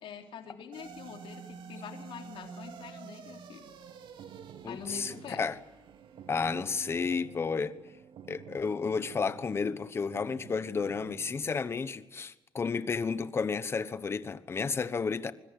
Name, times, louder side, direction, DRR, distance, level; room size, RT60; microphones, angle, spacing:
voice 1, 0.0-3.6 4.6-5.4, left 7 dB, 80° left, 3.4 m, -45 dB
sound 1, 0.7-9.2, right 6 dB, 65° right, 3.0 m, -50 dB
sound 2, 3.7-11.6, right 10 dB, 85° right, 1.4 m, -51 dB
voice 2, 4.6-5.6 6.3-7.8 8.3-15.3, left 5 dB, 30° left, 1.1 m, -32 dB
24.5 x 22.0 x 8.3 m
wide cardioid pair, 165°, 9 cm